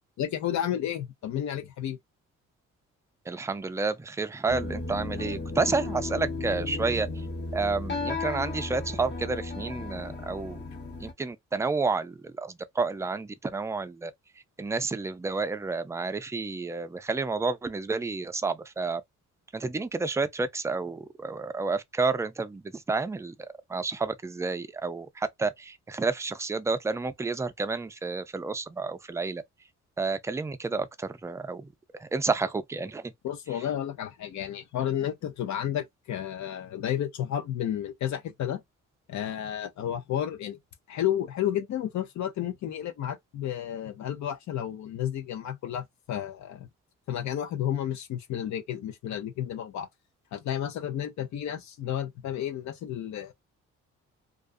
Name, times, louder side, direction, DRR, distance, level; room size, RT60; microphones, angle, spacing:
voice 1, 0.2-2.0 33.2-38.6 39.1-40.6 40.9-46.7 47.1-49.9 50.3-53.3, left 10 dB, 70° left, 0.7 m, -32 dB
voice 2, 3.3-7.1 7.5-10.6 11.0-14.1 14.6-19.0 19.5-23.3 23.7-29.4 30.0-31.7 32.0-33.0, right 4 dB, 10° right, 0.3 m, -30 dB
sound 1, 4.5-11.1, left 3 dB, 35° left, 1.0 m, -34 dB
2.4 x 2.3 x 2.4 m
cardioid pair, 90°, 30 cm